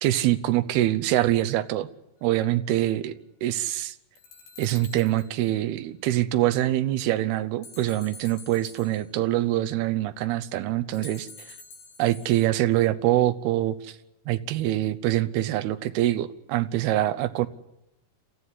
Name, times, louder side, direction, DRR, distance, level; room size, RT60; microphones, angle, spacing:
voice 1, 0.0-1.9 2.2-3.1 3.4-4.0 4.6-11.6 12.0-14.0 14.3-17.5, right 14 dB, 75° right, 11 dB, 2.8 m, -24 dB
sound 1, 4.2-5.5 7.6-9.3 10.9-12.4, left 4 dB, 90° left, 5.3 m, -48 dB
28.5 x 14.5 x 9.8 m, 0.91 s
omnidirectional pair, 4.8 m